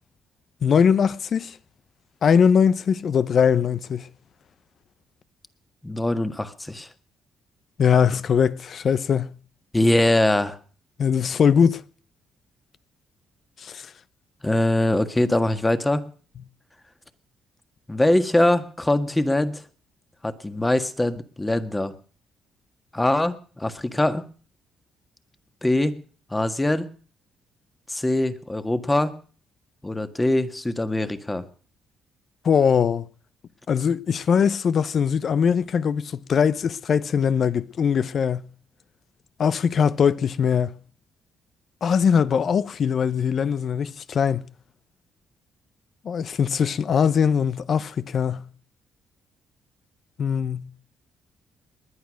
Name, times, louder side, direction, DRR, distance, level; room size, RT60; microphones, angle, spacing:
voice 1, 0.6-1.6 2.2-4.1 7.8-9.3 11.0-11.8 13.6-13.9 32.4-33.1 33.7-38.5 39.4-40.7 41.8-44.5 46.0-48.5 50.2-50.7, left 7 dB, 55° left, 0.8 m, -21 dB
voice 2, 5.8-6.9 9.7-10.6 14.4-16.0 17.9-19.6 20.2-21.9 22.9-24.2 25.6-25.9 26.3-26.9 27.9-29.1 29.8-31.5, left 1 dB, 15° left, 1.6 m, -22 dB
20.0 x 10.5 x 6.4 m
cardioid pair, 90°, 0 cm